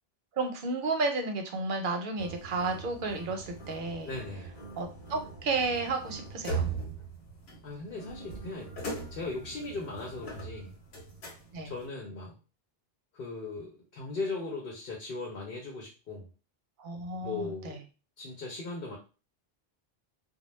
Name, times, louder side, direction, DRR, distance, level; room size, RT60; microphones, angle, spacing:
voice 1, 0.4-4.1 4.8-6.7 11.5-11.7 16.8-17.8, right 3 dB, 60° right, 4 dB, 0.7 m, -32 dB
sound 1, 2.2-11.9, right 4 dB, 85° left, 1.1 m, -40 dB
voice 2, 4.0-4.5 7.6-8.7 9.1-10.7 11.6-12.4 13.1-16.3 17.2-17.8 18.2-19.0, left 3 dB, 65° left, -1 dB, 0.9 m, -38 dB
2.2 x 2.1 x 3.1 m, 0.32 s
omnidirectional pair, 1.1 m